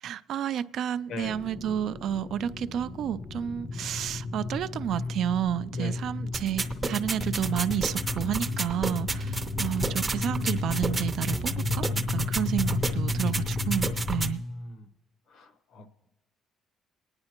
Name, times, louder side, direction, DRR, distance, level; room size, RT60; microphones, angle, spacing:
voice 1, 0.0-14.4, right 10 dB, 65° right, 15 dB, 0.3 m, -31 dB
sound 1, 1.2-14.3, left 3 dB, 35° left, 0.4 m, -33 dB
sound 2, 6.3-14.3, right 3 dB, 20° right, 0.6 m, -32 dB
voice 2, 15.3-15.9, left 3 dB, 70° left, 8 dB, 0.8 m, -39 dB
24.0 x 9.6 x 2.9 m, 0.95 s
cardioid pair, 140°, 0 cm